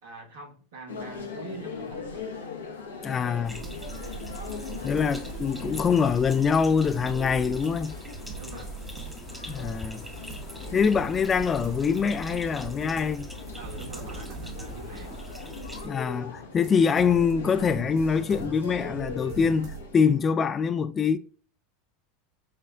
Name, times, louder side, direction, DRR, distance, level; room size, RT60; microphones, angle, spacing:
voice 1, 0.0-2.3 8.3-8.7 13.6-15.2, right 3 dB, 70° right, 1.6 m, -43 dB
sound 1, 0.9-20.2, left 4 dB, 90° left, 0.9 m, -41 dB
voice 2, 3.0-3.6 4.8-7.9 9.5-10.0 10.7-13.3 15.8-21.2, left 6 dB, 30° left, 0.3 m, -24 dB
sound 2, 3.4-15.9, right 1 dB, 5° right, 0.8 m, -41 dB
sound 3, 3.6-16.2 16.6-19.9, right 6 dB, 55° right, 0.8 m, -44 dB
6.9 x 2.4 x 2.2 m
hypercardioid pair, 85°, 0 cm